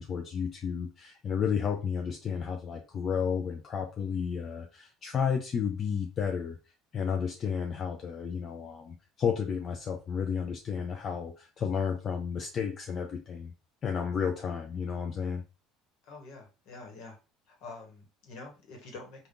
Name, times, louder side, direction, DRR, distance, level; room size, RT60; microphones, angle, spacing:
voice 1, 0.0-6.6 6.9-13.5 13.8-15.4, left 6 dB, 40° left, 4 dB, 0.4 m, -32 dB
voice 2, 16.0-17.2 17.5-19.3, left 3 dB, 70° left, 1 dB, 1.1 m, -47 dB
3.5 x 2.3 x 2.5 m, 0.31 s
supercardioid pair, 100°, 0 cm